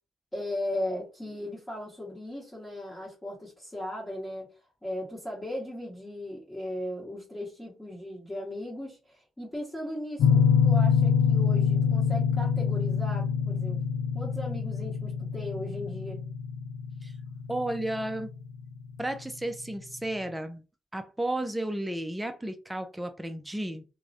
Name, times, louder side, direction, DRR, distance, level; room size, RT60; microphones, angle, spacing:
voice 1, 0.3-4.5 4.8-13.8 14.1-16.2, left 1 dB, 15° left, 1.0 m, -37 dB
sound 1, 10.2-18.9, left 6 dB, 75° left, 0.5 m, -26 dB
voice 2, 17.5-18.3 19.0-20.6 20.9-23.8, right 1 dB, 10° right, 0.4 m, -33 dB
2.3 x 2.0 x 2.7 m
supercardioid pair, 65°, 0 cm